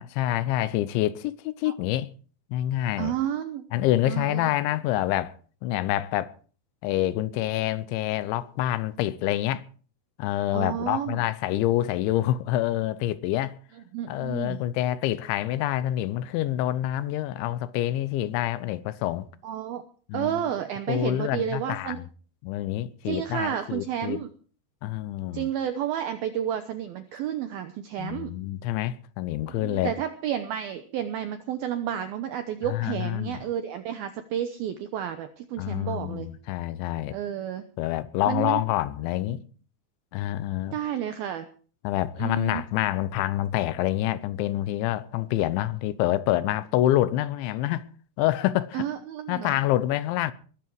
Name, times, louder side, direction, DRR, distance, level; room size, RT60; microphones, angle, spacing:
voice 1, 0.0-2.1 2.5-3.1 3.7-5.3 5.6-6.3 6.8-9.6 10.2-13.6 14.1-19.3 20.1-20.5 20.9-22.1 22.4-24.2 24.8-25.5 28.0-29.9 32.7-33.4 35.6-37.2 37.8-39.4 40.1-40.8 41.8-47.9 48.2-48.9 49.3-50.3, left 14 dB, 80° left, 3.0 m, -27 dB
voice 2, 3.0-3.6 4.1-4.5 10.5-11.2 13.9-14.6 19.4-19.8 20.1-22.0 23.1-24.3 25.3-28.3 29.6-36.3 37.1-37.6 38.3-38.6 40.7-41.5 42.2-42.6 48.7-49.6, right 10 dB, 85° right, 2.1 m, -31 dB
20.5 x 12.5 x 4.7 m
omnidirectional pair, 5.6 m